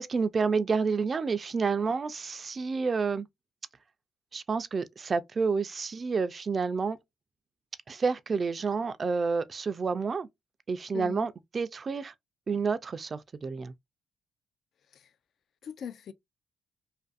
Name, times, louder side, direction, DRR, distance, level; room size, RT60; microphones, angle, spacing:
voice 1, 0.0-3.3 4.3-7.0 7.9-10.3 10.7-11.3 11.5-12.1 12.5-13.7, right 5 dB, 40° right, 0.3 m, -29 dB
voice 2, 10.9-11.3 14.9-15.1 15.6-16.1, left 8 dB, 65° left, 0.3 m, -40 dB
2.5 x 2.5 x 2.3 m
cardioid pair, 90°, 0 cm